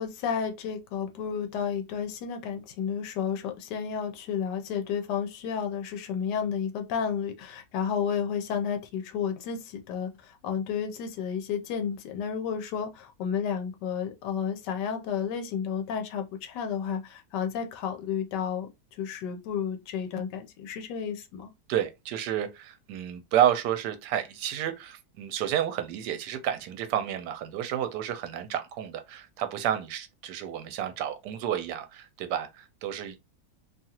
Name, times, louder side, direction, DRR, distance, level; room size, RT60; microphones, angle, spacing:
voice 1, 0.0-21.5, left 7 dB, 85° left, 1.2 m, -32 dB
voice 2, 21.7-33.2, right 10 dB, 80° right, 1.2 m, -30 dB
2.9 x 2.4 x 2.8 m
omnidirectional pair, 1.8 m